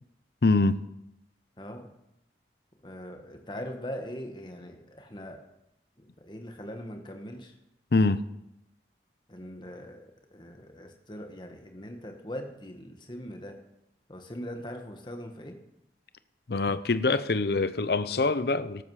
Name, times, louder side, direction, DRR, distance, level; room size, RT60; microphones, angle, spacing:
voice 1, 0.4-0.8 7.9-8.2 16.5-18.8, left 3 dB, 65° left, 13 dB, 0.6 m, -24 dB
voice 2, 1.6-1.9 2.8-5.4 6.0-7.6 9.3-13.6 14.1-15.6, equal, 25° left, 4 dB, 1.4 m, -41 dB
13.5 x 13.0 x 4.9 m, 0.84 s
head